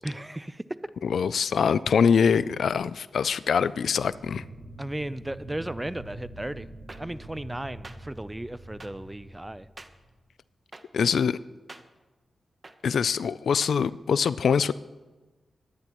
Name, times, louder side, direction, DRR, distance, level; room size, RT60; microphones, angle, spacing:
voice 1, 0.0-0.6 4.8-9.7, right 1 dB, 15° right, 16 dB, 0.5 m, -35 dB
voice 2, 1.0-4.4 10.9-11.4 12.8-14.7, left 6 dB, 80° left, 17 dB, 0.3 m, -24 dB
sound 1, 3.8-10.2, right 1 dB, 80° right, 4.6 m, -45 dB
sound 2, 6.9-7.0 7.8-8.0 8.8-8.9 9.8-9.9 10.7-10.8 11.7-11.8 12.6-12.8 13.6-13.8, right 2 dB, 35° right, 1.0 m, -43 dB
21.5 x 10.0 x 3.0 m, 1.2 s
cardioid pair, 45°, 0 cm